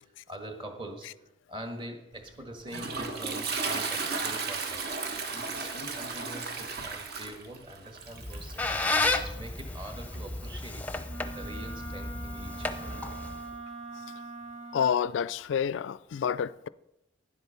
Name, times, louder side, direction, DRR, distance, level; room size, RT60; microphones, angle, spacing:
voice 1, 0.0-4.8 5.3-11.0 11.3-13.0, right 1 dB, 25° right, 1.5 m, -44 dB
Toilet flush, 2.2-10.5, right 4 dB, 55° right, 1.3 m, -35 dB
Squeak, 8.1-13.5, left 2 dB, 10° left, 0.6 m, -32 dB
Wind instrument woodwind instrument, 11.0-15.1, right 2 dB, 70° right, 2.6 m, -42 dB
voice 2, 14.7-16.7, left 7 dB, 75° left, 0.3 m, -28 dB
10.5 x 8.0 x 5.6 m
head